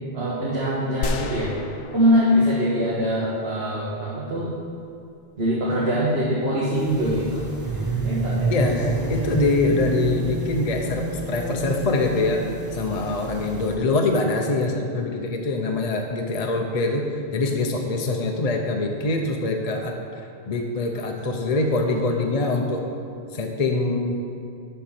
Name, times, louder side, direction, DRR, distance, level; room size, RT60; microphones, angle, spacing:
voice 1, 0.1-1.5 1.9-4.5 5.4-7.5 8.0-8.5, equal, 60° right, -8 dB, 1.7 m, -23 dB
sound 1, 1.0-3.9, left 3 dB, 85° left, 0.9 m, -33 dB
sound 2, 6.7-13.8, right 3 dB, 20° right, 1.1 m, -29 dB
voice 2, 8.5-12.4 12.7-22.9 23.3-24.2, left 2 dB, 40° left, 2 dB, 0.7 m, -24 dB
11.5 x 4.5 x 5.8 m, 2.4 s
omnidirectional pair, 1.2 m